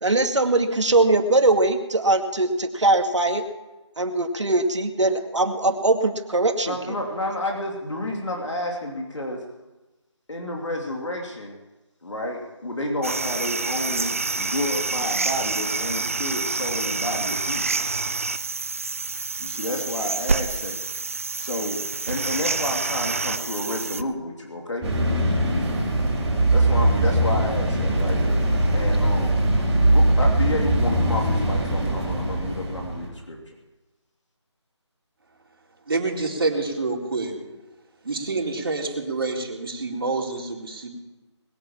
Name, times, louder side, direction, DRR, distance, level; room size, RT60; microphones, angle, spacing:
voice 1, 0.0-3.4 4.0-7.0, right 2 dB, 75° right, 5 dB, 2.4 m, -21 dB
voice 2, 6.6-9.4 10.3-11.5 12.0-17.8 19.4-20.8 21.4-24.9 26.5-28.2 28.7-29.4 29.9-33.5, left 1 dB, 75° left, 0 dB, 3.3 m, -30 dB
sound 1, 13.0-24.0, right 4 dB, 30° right, 0.6 m, -27 dB
sound 2, 24.8-33.1, right 1 dB, 5° right, 3.4 m, -21 dB
voice 3, 35.9-37.4 38.0-40.9, right 3 dB, 50° right, -1 dB, 4.1 m, -27 dB
20.5 x 9.1 x 7.4 m, 1.1 s
figure-of-eight pair, 170°, 15 cm